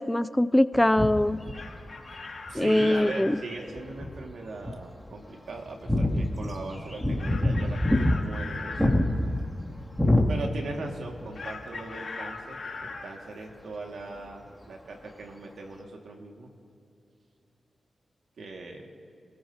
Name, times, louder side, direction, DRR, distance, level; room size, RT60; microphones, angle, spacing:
voice 1, 0.0-1.4 2.5-3.3, left 1 dB, 10° left, 15 dB, 0.5 m, -22 dB
sound 1, 0.7-2.9 3.5-4.3 4.6-4.7 5.0-5.1 5.6-10.9 11.1-11.3 12.8-12.9, left 1 dB, 5° right, 2.8 m, -26 dB
Chicken rooster, 1.3-3.4 7.2-8.9 11.3-13.1, left 4 dB, 60° left, 3.5 m, -39 dB
voice 2, 2.5-8.8 10.0-16.5 18.4-18.9, right 2 dB, 75° right, 1 dB, 2.1 m, -39 dB
28.0 x 15.0 x 2.9 m, 2.7 s
cardioid pair, 45°, 0 cm